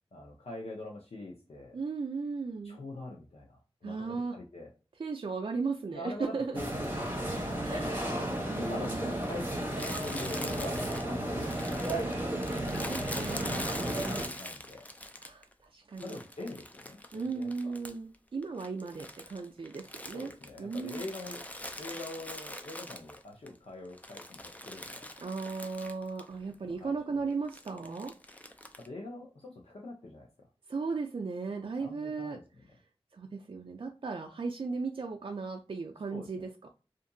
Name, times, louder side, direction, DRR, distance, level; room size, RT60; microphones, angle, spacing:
voice 1, 0.1-1.8 2.6-4.7 5.9-7.9 8.2-11.5 12.6-14.9 16.0-17.7 20.1-21.4 21.8-25.1 26.6-27.2 28.8-30.5 31.8-32.4 36.1-36.5, left 2 dB, 85° left, 0 dB, 0.6 m, -44 dB
voice 2, 1.7-2.8 3.8-4.4 5.0-6.6 7.6-8.1 8.5-9.3 12.5-14.2 15.2-16.2 17.1-20.3 20.6-21.0 25.2-28.1 30.7-32.4 33.1-36.7, right 4 dB, 60° right, 3 dB, 0.3 m, -36 dB
sound 1, 6.5-14.3, right 1 dB, 20° right, 0.9 m, -33 dB
Crumpling crinkling, 9.8-15.5 16.0-18.2 18.4-23.5 23.9-26.3 26.5-26.6 27.5-28.9, left 1 dB, 15° left, 0.4 m, -43 dB
2.7 x 2.5 x 2.6 m, 0.33 s
wide cardioid pair, 55°, 10 cm